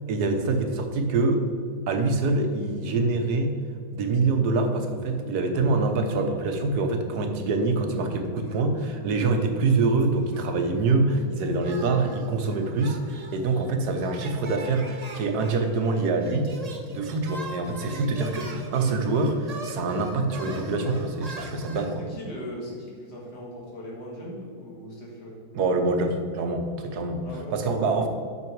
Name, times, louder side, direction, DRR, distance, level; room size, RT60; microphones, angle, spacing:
voice 1, 0.1-1.5 1.9-3.6 3.9-16.5 16.9-22.0 25.5-27.2 27.5-28.1, right 3 dB, 75° right, 5 dB, 1.4 m, -25 dB
sound 1, 8.5-9.3 9.6-10.9 11.6-21.9, right 2 dB, 40° right, 0.6 m, -42 dB
voice 2, 22.0-25.4 27.2-27.7, equal, 75° left, -3 dB, 2.6 m, -39 dB
8.5 x 6.2 x 4.6 m, 2.1 s
omnidirectional pair, 1.7 m